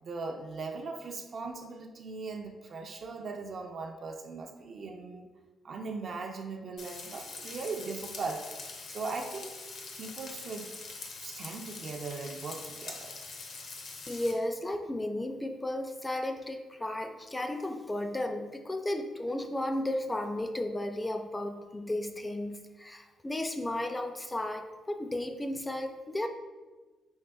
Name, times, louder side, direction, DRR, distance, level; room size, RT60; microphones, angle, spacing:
voice 1, 0.0-5.3 5.6-9.5 9.9-10.8 11.2-13.2, right 4 dB, 55° right, 3 dB, 0.5 m, -39 dB
Frying (food), 6.8-14.3, left 3 dB, 65° left, 0.6 m, -44 dB
voice 2, 14.1-26.3, left 1 dB, 15° left, 5 dB, 0.4 m, -34 dB
5.4 x 3.4 x 2.3 m, 1.3 s
cardioid pair, 80°, 0 cm